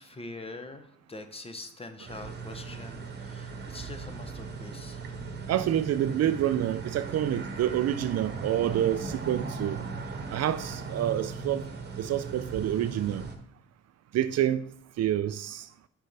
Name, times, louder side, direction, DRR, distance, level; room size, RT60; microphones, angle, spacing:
voice 1, 0.0-5.1, left 2 dB, 20° left, 0.7 m, -44 dB
sound 1, 2.1-13.4, right 4 dB, 35° right, 1.1 m, -38 dB
voice 2, 5.5-9.8 10.3-11.6 12.0-13.2 14.1-14.6 15.0-15.7, right 11 dB, 60° right, 0.4 m, -28 dB
6.6 x 5.0 x 3.3 m
cardioid pair, 90°, 30 cm